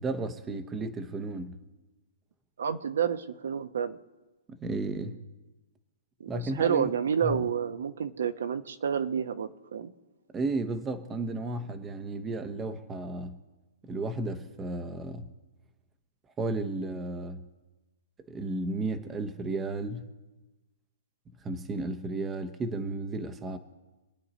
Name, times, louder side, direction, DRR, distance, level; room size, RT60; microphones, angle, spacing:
voice 1, 0.0-1.6 4.5-5.2 6.3-6.9 7.2-7.4 10.3-13.4 13.8-15.3 16.4-17.4 18.3-20.1 21.4-23.6, right 2 dB, 10° right, 0.8 m, -33 dB
voice 2, 2.6-4.0 6.2-9.9, right 7 dB, 70° right, 1.0 m, -29 dB
26.0 x 9.5 x 4.1 m
hypercardioid pair, 170°, 0 cm